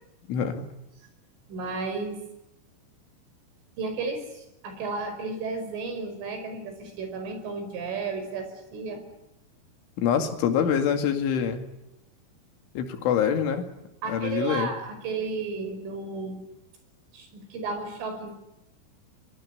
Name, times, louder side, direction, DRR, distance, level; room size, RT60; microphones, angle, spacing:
voice 1, 0.3-0.7 10.0-11.7 12.8-13.7 14.1-14.7, left 8 dB, 70° left, 6 dB, 4.7 m, -25 dB
voice 2, 1.5-2.3 3.8-9.1 14.0-16.4 17.1-18.3, right 4 dB, 70° right, 7 dB, 7.4 m, -33 dB
23.5 x 23.0 x 9.6 m, 0.90 s
omnidirectional pair, 5.9 m